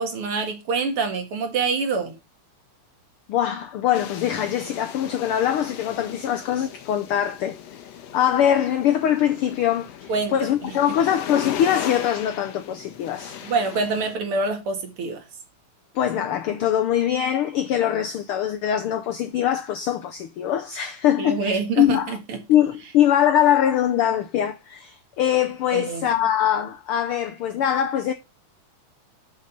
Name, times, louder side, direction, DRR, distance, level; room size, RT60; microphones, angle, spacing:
voice 1, 0.0-2.1 10.1-10.3 13.4-15.2 21.2-22.4 25.7-26.1, right 4 dB, 50° right, 2.3 m, -26 dB
voice 2, 3.3-7.8 8.1-13.4 15.9-22.2 22.5-28.1, left 10 dB, 85° left, 1.2 m, -22 dB
sound 1, 3.9-14.2, left 9 dB, 65° left, 2.1 m, -37 dB
6.5 x 6.2 x 6.8 m
omnidirectional pair, 3.3 m